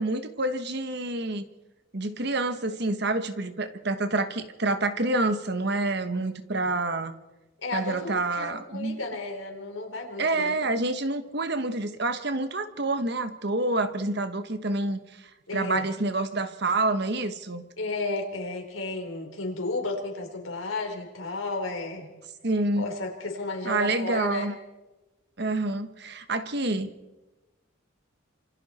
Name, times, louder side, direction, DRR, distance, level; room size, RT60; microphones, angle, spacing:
voice 1, 0.0-1.4 1.9-7.1 7.7-9.0 10.2-15.0 15.5-17.6 22.4-22.9 23.6-24.5 25.4-26.9, right 2 dB, 55° right, 9 dB, 1.4 m, -27 dB
voice 2, 7.6-10.5 15.5-15.8 17.8-22.1 22.8-24.5, left 3 dB, 85° left, 3 dB, 4.2 m, -33 dB
27.0 x 24.5 x 4.4 m, 1.1 s
head